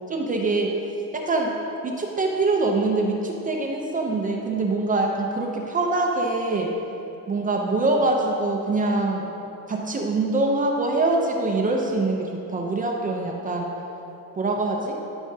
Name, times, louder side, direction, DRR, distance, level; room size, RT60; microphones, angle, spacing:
voice 1, 0.1-0.7 1.1-1.5 1.8-6.7 7.3-9.3 9.7-13.7 14.4-15.0, right 2 dB, 25° right, 0 dB, 0.5 m, -24 dB
13.0 x 4.9 x 2.7 m, 3.0 s
cardioid pair, 140°, 36 cm